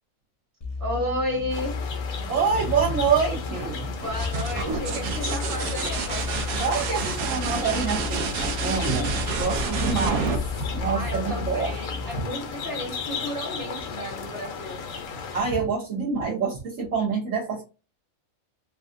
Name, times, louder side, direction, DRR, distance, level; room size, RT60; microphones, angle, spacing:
sound 1, 0.6-12.2, left 4 dB, 30° left, 0.8 m, -33 dB
voice 1, 0.8-1.8 4.0-6.3 8.6-9.1 10.9-14.8, left 1 dB, 40° right, 1.5 m, -32 dB
sound 2, 1.5-15.4, left 5 dB, 70° left, 1.1 m, -35 dB
voice 2, 2.3-3.9 6.6-9.1 9.4-10.4 10.7-11.7 15.3-17.6, right 5 dB, 65° right, 1.3 m, -26 dB
sound 3, 4.0-11.6 13.4-13.9, right 4 dB, 90° right, 1.1 m, -30 dB
3.3 x 2.4 x 2.5 m
omnidirectional pair, 1.5 m